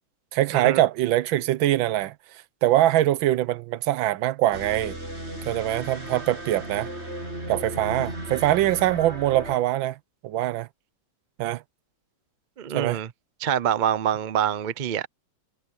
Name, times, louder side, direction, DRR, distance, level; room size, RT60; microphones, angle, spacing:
voice 1, 0.3-2.1 2.6-5.0 5.4-6.9 7.5-10.0 10.2-10.7 11.4-11.6 12.7-13.0, right 14 dB, 85° right, 1.5 m, -23 dB
sound 1, 4.5-9.6, right 1 dB, 30° right, 7.7 m, -35 dB
voice 2, 12.6-13.1 13.4-15.1, right 9 dB, 65° right, 0.4 m, -25 dB
omnidirectional pair, 2.1 m